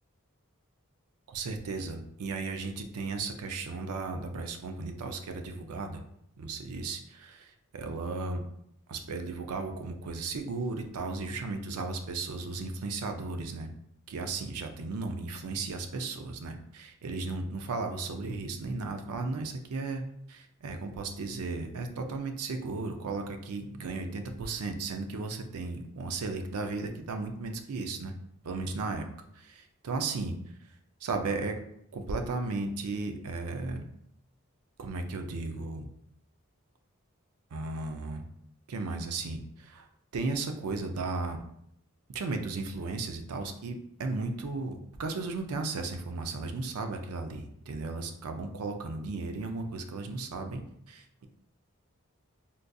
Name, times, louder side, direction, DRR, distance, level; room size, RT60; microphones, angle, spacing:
voice 1, 1.3-6.0 6.4-8.4 8.9-13.7 14.1-20.0 20.3-28.1 28.4-29.1 29.4-30.3 31.0-31.6 31.9-33.8 34.8-35.9 37.5-38.2 38.7-39.9 40.1-41.4 42.1-51.3, right 3 dB, 90° right, 6 dB, 0.4 m, -35 dB
3.8 x 2.5 x 2.3 m, 0.73 s
head